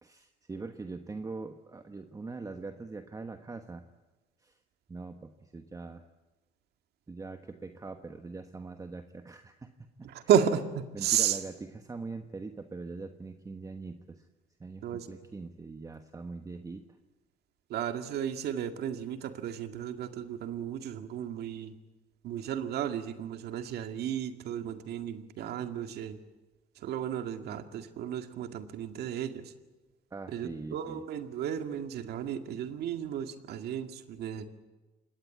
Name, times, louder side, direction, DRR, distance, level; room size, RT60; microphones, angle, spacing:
voice 1, 0.0-3.9 4.4-4.6 4.9-6.1 7.1-10.1 10.9-14.3 14.6-16.9 30.1-31.0, right 3 dB, 20° right, 7 dB, 1.2 m, -42 dB
voice 2, 10.0-11.4 14.8-15.1 17.7-21.7 22.2-26.2 26.8-29.5 30.3-34.5, right 9 dB, 70° right, 7 dB, 2.1 m, -33 dB
25.5 x 20.5 x 8.6 m, 1.2 s
cardioid pair, 110°, 17 cm